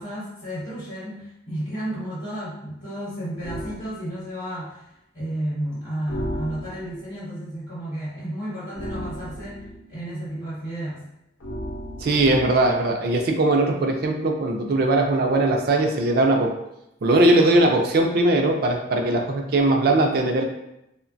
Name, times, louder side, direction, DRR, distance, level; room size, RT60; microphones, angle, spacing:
voice 1, 0.0-4.9 5.1-11.0, right 1 dB, 45° left, -9 dB, 0.9 m, -32 dB
sound 1, 3.4-3.8 6.1-7.0 8.7-9.8 11.4-12.8, equal, 80° left, 0.7 m, -34 dB
voice 2, 12.0-16.5 17.0-20.4, right 2 dB, 50° right, 3 dB, 0.3 m, -20 dB
3.0 x 2.1 x 2.5 m, 0.85 s
head